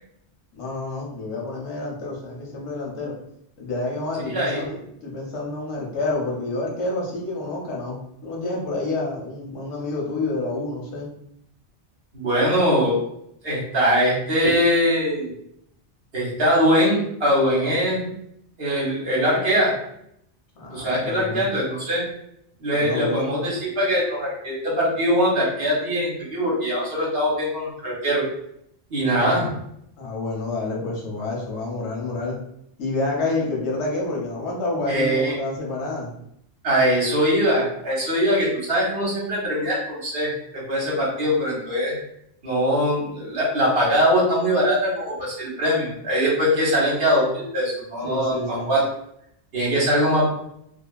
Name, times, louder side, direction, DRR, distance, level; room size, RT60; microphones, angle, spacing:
voice 1, 0.5-3.1 3.6-4.7 5.0-11.1 17.6-18.0 20.6-21.5 22.7-23.3 29.1-29.5 30.0-32.4 32.8-36.2 48.0-48.7, left 2 dB, 85° left, -2 dB, 1.1 m, -29 dB
voice 2, 4.3-4.6 12.1-13.0 13.4-15.3 16.1-18.1 18.6-19.7 20.7-22.0 22.6-28.2 28.9-29.4 34.9-35.4 36.6-41.9 42.4-48.8 49.5-50.3, equal, 65° right, -5 dB, 1.2 m, -22 dB
2.7 x 2.3 x 2.3 m, 0.74 s
omnidirectional pair, 1.1 m